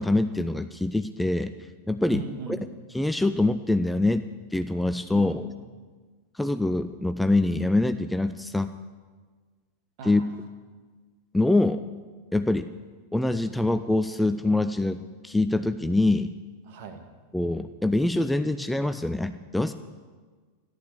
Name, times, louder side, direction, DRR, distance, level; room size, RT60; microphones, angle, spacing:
voice 1, 0.0-1.5 1.9-2.3 2.9-4.2 4.5-5.5 6.3-8.7 10.0-10.2 11.3-11.8 12.3-12.7 13.1-16.3 17.3-19.7, left 2 dB, 5° left, 10 dB, 0.5 m, -24 dB
voice 2, 2.1-2.7 5.1-5.4 10.0-10.3 16.7-17.0, right 4 dB, 50° right, 6 dB, 2.0 m, -38 dB
14.5 x 11.5 x 8.4 m, 1.5 s
figure-of-eight pair, 90°, 0 cm